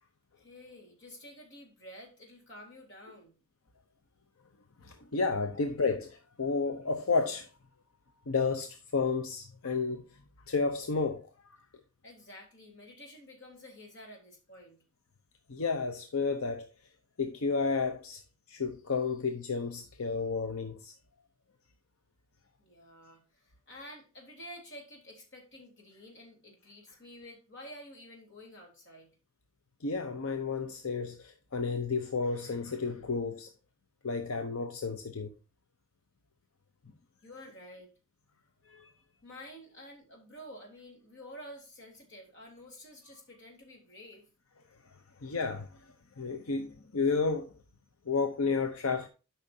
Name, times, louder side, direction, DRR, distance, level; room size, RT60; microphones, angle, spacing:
voice 1, 0.4-3.4 12.0-14.8 22.6-29.1 37.2-37.9 39.2-44.3, equal, 60° left, 3.6 m, -50 dB
voice 2, 4.8-7.5 8.3-10.0 10.5-11.3 15.5-16.7 17.2-18.2 18.5-20.9 29.8-33.5 34.0-35.3 38.7-38.9 45.2-45.7 46.2-47.5 48.1-49.1, left 4 dB, 85° left, 0.8 m, -31 dB
12.0 x 5.7 x 2.7 m
head